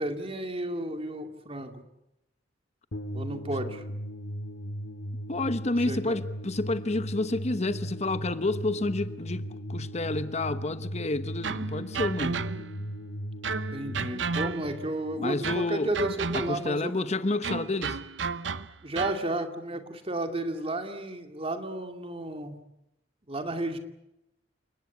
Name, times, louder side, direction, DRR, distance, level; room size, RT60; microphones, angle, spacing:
voice 1, 0.0-1.8 3.1-3.8 5.9-6.2 13.7-17.1 18.8-22.6 23.3-23.8, right 1 dB, 30° right, 2.5 m, -33 dB
sound 1, 2.9-16.0, equal, 65° left, 2.2 m, -37 dB
voice 2, 5.3-12.4 15.2-15.9 16.3-18.0, left 2 dB, 40° left, 1.0 m, -29 dB
sound 2, 11.4-12.8 13.4-14.9 15.4-16.8 17.4-19.3, right 5 dB, 80° right, 0.9 m, -33 dB
29.5 x 19.0 x 8.5 m
head